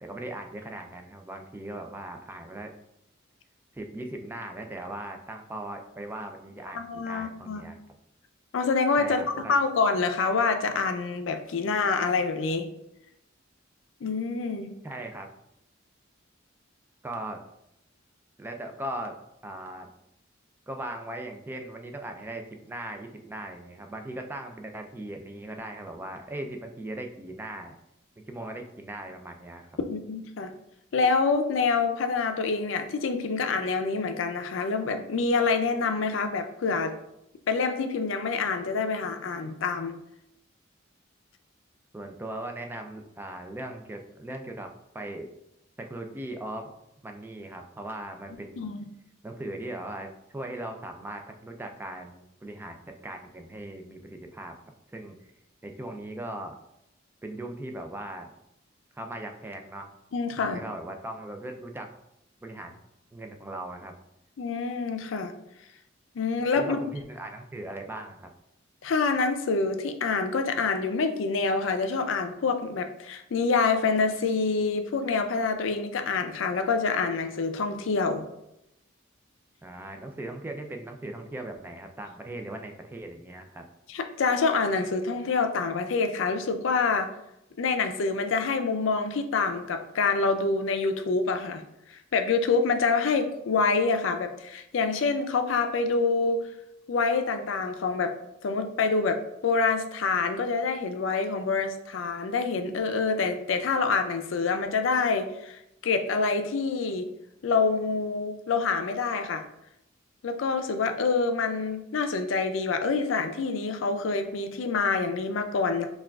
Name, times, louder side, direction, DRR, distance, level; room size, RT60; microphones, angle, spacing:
voice 1, 0.0-2.7 3.7-7.8 9.0-9.5 14.8-15.3 17.0-17.4 18.4-19.2 19.4-19.9 20.7-27.7 28.2-29.8 41.9-45.3 45.8-46.7 47.0-48.7 49.2-54.6 54.9-55.2 55.6-56.6 57.2-58.3 58.9-59.9 60.4-61.9 62.4-62.8 63.1-63.9 66.6-68.3 79.6-83.6, right 1 dB, 10° right, 4 dB, 0.3 m, -39 dB
voice 2, 6.7-7.6 8.5-9.2 9.5-12.7 14.0-14.7 29.9-30.5 30.9-36.9 37.5-39.9 48.6-48.8 60.1-60.6 64.4-65.3 66.1-66.8 68.8-78.3 83.9-87.1 87.6-91.6 91.9-96.4 96.9-98.2 98.4-107.1 107.4-109.4 110.2-115.9, left 4 dB, 70° left, 7 dB, 0.4 m, -26 dB
5.8 x 2.3 x 2.3 m, 0.83 s
head